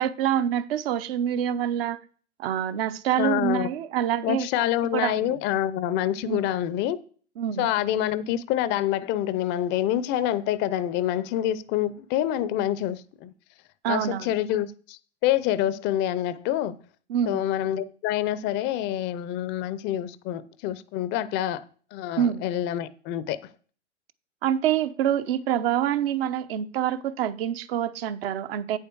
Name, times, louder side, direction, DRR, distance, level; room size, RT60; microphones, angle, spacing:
voice 1, 0.0-2.0 2.4-5.3 6.2-6.5 7.4-7.7 13.8-14.3 17.1-17.4 22.2-22.5 24.4-28.8, right 10 dB, 55° right, 1.0 m, -26 dB
voice 2, 3.2-3.7 4.2-7.0 7.6-13.3 13.8-16.8 17.3-21.6 21.9-23.4, left 12 dB, 30° left, 0.6 m, -27 dB
8.7 x 7.1 x 4.6 m
hypercardioid pair, 115°, 35 cm